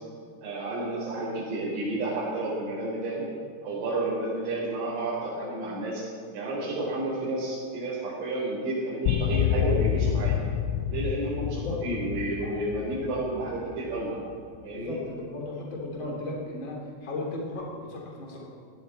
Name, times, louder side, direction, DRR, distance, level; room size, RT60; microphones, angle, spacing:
voice 1, 0.4-3.3 3.6-6.1 6.3-10.4 10.9-14.2 14.6-15.0, right 2 dB, 75° right, -9 dB, 6.8 m, -31 dB
sound 1, 9.1-14.4, left 10 dB, 80° left, 2.9 m, -28 dB
voice 2, 14.7-18.5, left 2 dB, 30° left, -2 dB, 3.3 m, -35 dB
18.0 x 18.0 x 4.4 m, 2.3 s
omnidirectional pair, 5.8 m